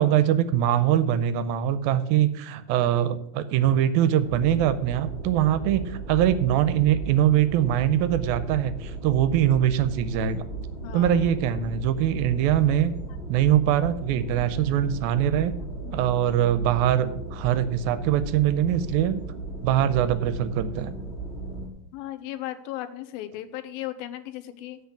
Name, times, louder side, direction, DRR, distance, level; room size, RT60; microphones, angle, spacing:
voice 1, 0.0-10.4 10.9-12.9 13.3-15.5 15.9-19.2 19.6-20.9, right 11 dB, 80° right, 13 dB, 2.4 m, -23 dB
sound 1, 4.2-21.7, right 3 dB, 25° left, 1.5 m, -36 dB
voice 2, 10.8-11.2 15.9-16.1 21.9-24.8, left 13 dB, 85° left, 11 dB, 2.5 m, -36 dB
8.1 x 6.5 x 8.1 m, 0.75 s
omnidirectional pair, 4.3 m